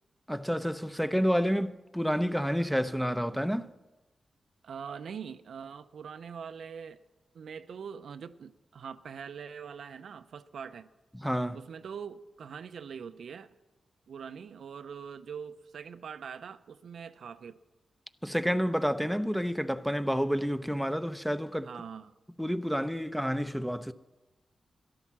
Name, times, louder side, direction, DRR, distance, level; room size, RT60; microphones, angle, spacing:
voice 1, 0.3-3.7 11.1-11.6 18.2-21.7 22.4-23.9, equal, ahead, 0.6 m, -29 dB
voice 2, 4.6-7.0 7.3-10.9 11.5-13.5 14.1-17.6 21.6-22.1, right 7 dB, 80° right, 0.5 m, -43 dB
13.0 x 11.0 x 7.3 m
cardioid pair, 70°, 0 cm